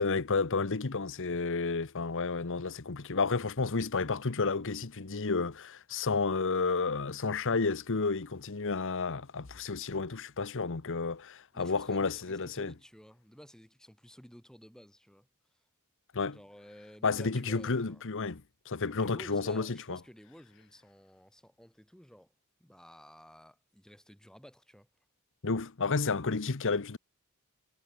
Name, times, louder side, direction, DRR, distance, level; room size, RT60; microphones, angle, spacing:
voice 1, 0.0-12.7 16.1-16.4 17.0-20.0 25.4-27.0, left 4 dB, 60° left, 1.0 m, -31 dB
voice 2, 11.5-15.3 16.3-18.0 18.9-22.3 22.6-24.9, equal, 5° left, 4.7 m, -53 dB
head